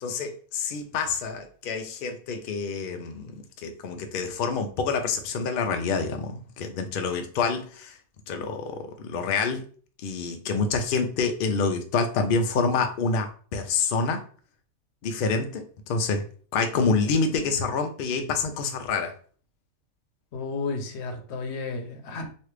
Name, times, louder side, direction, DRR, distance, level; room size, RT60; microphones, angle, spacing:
voice 1, 0.0-8.0 8.3-9.6 10.0-14.2 15.0-16.2 16.5-19.1, left 4 dB, 90° left, 0.4 m, -27 dB
voice 2, 20.3-22.3, left 3 dB, 60° left, 0.8 m, -32 dB
3.1 x 2.4 x 3.2 m
omnidirectional pair, 1.5 m